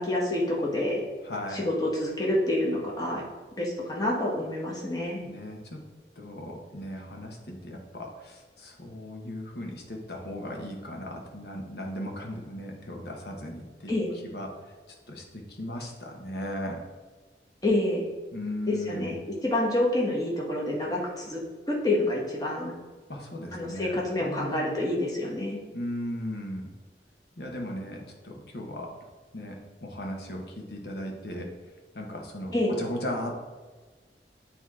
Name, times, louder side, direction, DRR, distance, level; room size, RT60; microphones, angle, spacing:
voice 1, 0.0-1.0 1.5-3.2 3.6-5.2 13.9-14.1 17.6-18.1 18.7-21.4 21.7-22.7 23.5-25.6 32.5-32.8, left 1 dB, 20° left, -3 dB, 1.2 m, -28 dB
voice 2, 1.2-1.7 5.2-5.8 6.2-13.9 14.2-14.5 15.1-16.8 18.3-19.1 23.1-24.6 25.7-26.7 27.4-29.0 29.3-31.5 31.9-33.3, left 1 dB, 70° left, 1 dB, 1.1 m, -37 dB
8.1 x 3.0 x 4.8 m, 1.3 s
head